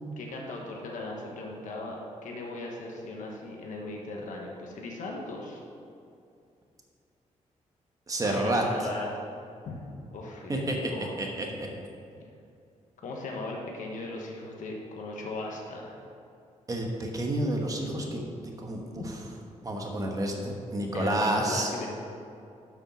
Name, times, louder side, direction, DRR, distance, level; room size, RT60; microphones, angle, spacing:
voice 1, 0.2-5.6 8.2-9.1 9.6-11.1 13.0-16.0 18.9-19.0 20.9-21.9, left 2 dB, 80° left, -1 dB, 1.3 m, -38 dB
voice 2, 8.1-8.6 10.5-10.8 11.2-11.7 16.7-19.0 19.6-21.7, right 1 dB, 25° right, 1 dB, 1.2 m, -30 dB
7.5 x 6.2 x 6.0 m, 2.5 s
wide cardioid pair, 135°, 13 cm